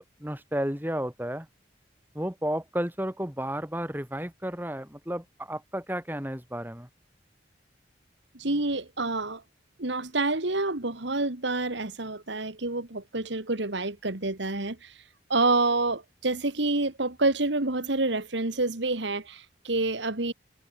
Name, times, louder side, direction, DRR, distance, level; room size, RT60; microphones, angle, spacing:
voice 1, 0.0-1.5 2.1-6.9, equal, 10° right, 3.9 m, -32 dB
voice 2, 8.3-9.4 9.8-14.9 15.3-20.3, right 2 dB, 70° right, 2.1 m, -28 dB
head